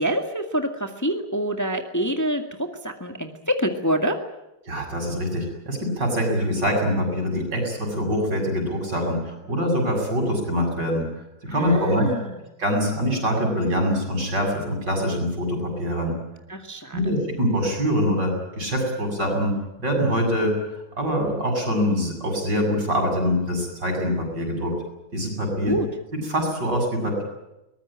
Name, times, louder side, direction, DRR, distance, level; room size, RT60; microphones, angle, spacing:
voice 1, 0.0-2.4 2.8-4.2 11.5-12.4 16.5-17.1 25.6-25.9, equal, 10° left, 5 dB, 1.8 m, -26 dB
voice 2, 4.7-11.0 11.5-12.1 12.6-16.1 16.9-20.6 21.0-24.8 25.1-25.7 26.3-27.2, equal, 65° right, 2 dB, 8.1 m, -24 dB
23.0 x 20.0 x 8.9 m, 0.93 s
omnidirectional pair, 2.0 m